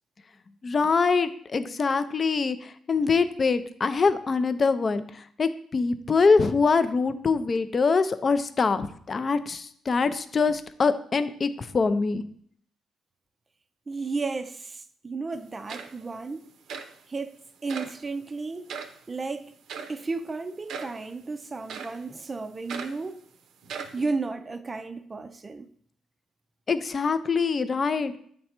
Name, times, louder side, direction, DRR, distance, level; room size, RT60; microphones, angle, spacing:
voice 1, 0.6-12.2 26.7-28.1, left 4 dB, 40° left, 0.4 m, -24 dB
voice 2, 13.9-16.5 17.1-18.7 19.1-19.5 19.9-23.2 23.9-25.7, right 3 dB, 30° right, 0.4 m, -33 dB
sound 1, 15.3-15.4 15.7-16.2 16.7-16.9 17.7-18.0 18.7-19.0 19.7-20.0 20.7-21.0 21.7-22.0 22.7-23.0 23.6-24.0, right 6 dB, 75° right, 0.6 m, -38 dB
8.4 x 3.3 x 4.3 m
cardioid pair, 90°, 0 cm